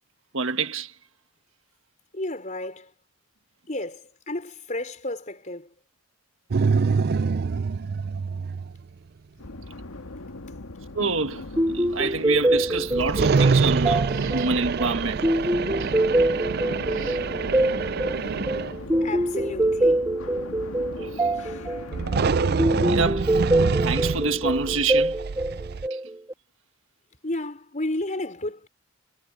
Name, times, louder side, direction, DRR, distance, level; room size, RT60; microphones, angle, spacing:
voice 1, 0.3-0.9 10.9-15.2 15.8-15.9 16.9-17.2 21.1-21.2 22.8-23.3 23.8-25.2 25.9-26.0, right 4 dB, 65° right, 1.5 m, -27 dB
voice 2, 2.1-2.9 3.7-5.7 10.4-10.5 19.0-20.1 21.4-21.5 27.2-28.7, left 1 dB, 35° left, 4.6 m, -32 dB
sound 1, 6.5-8.8 12.9-18.8 21.9-25.9, right 5 dB, 45° right, 0.4 m, -25 dB
sound 2, 9.4-24.8, left 2 dB, 85° left, 1.8 m, -40 dB
sound 3, 11.6-26.3, right 1 dB, 15° right, 1.5 m, -25 dB
head